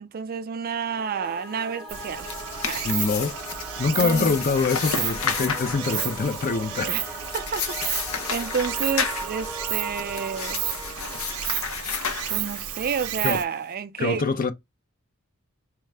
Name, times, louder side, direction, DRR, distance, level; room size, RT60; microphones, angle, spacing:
voice 1, 0.0-2.3 2.7-2.9 3.9-4.4 6.9-10.6 12.3-14.3, right 6 dB, 45° right, 0.4 m, -30 dB
Singing / Musical instrument, 0.9-12.2, right 1 dB, ahead, 0.7 m, -39 dB
Stream, 1.9-13.4, right 11 dB, 90° right, 0.7 m, -32 dB
sound 1, 2.0-12.9, left 6 dB, 75° left, 0.8 m, -32 dB
voice 2, 2.8-3.4 3.8-7.2 13.2-13.4 14.0-14.5, left 4 dB, 40° left, 0.5 m, -24 dB
4.5 x 2.4 x 3.2 m
head